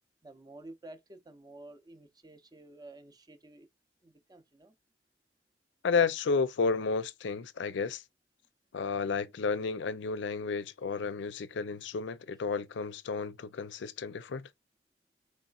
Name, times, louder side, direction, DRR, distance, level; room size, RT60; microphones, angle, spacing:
voice 1, 0.2-3.7 4.0-4.7, right 2 dB, 20° right, 0.6 m, -51 dB
voice 2, 5.8-8.0 8.7-14.5, left 4 dB, 70° left, 0.5 m, -32 dB
4.1 x 3.2 x 2.3 m
head